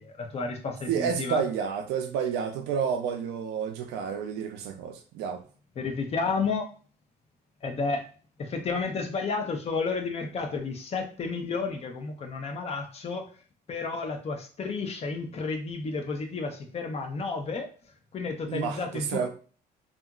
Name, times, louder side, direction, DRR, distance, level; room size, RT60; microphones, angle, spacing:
voice 1, 0.0-1.4 5.8-6.7 7.6-8.1 8.4-13.3 13.7-17.7 18.1-19.3, left 4 dB, 40° left, 4 dB, 0.6 m, -31 dB
voice 2, 0.9-5.4 18.5-19.3, right 7 dB, 85° right, 6 dB, 0.5 m, -30 dB
2.8 x 2.4 x 2.3 m, 0.39 s
cardioid pair, 110°, 17 cm